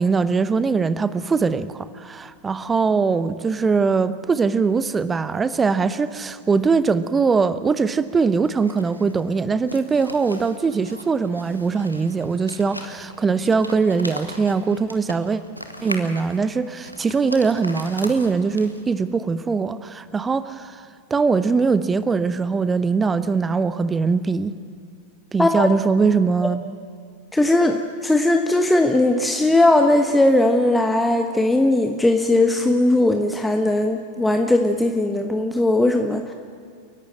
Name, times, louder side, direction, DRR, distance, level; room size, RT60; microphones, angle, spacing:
voice 1, 0.0-15.4 15.8-20.8 21.1-24.5 25.3-26.7, right 5 dB, 15° right, 14 dB, 0.8 m, -21 dB
sound 1, 8.5-19.0, equal, 90° right, 1.8 m, -38 dB
voice 2, 27.3-36.3, left 2 dB, 5° left, 5 dB, 1.1 m, -18 dB
29.0 x 11.5 x 9.1 m, 2.3 s
figure-of-eight pair, 90°, 0 cm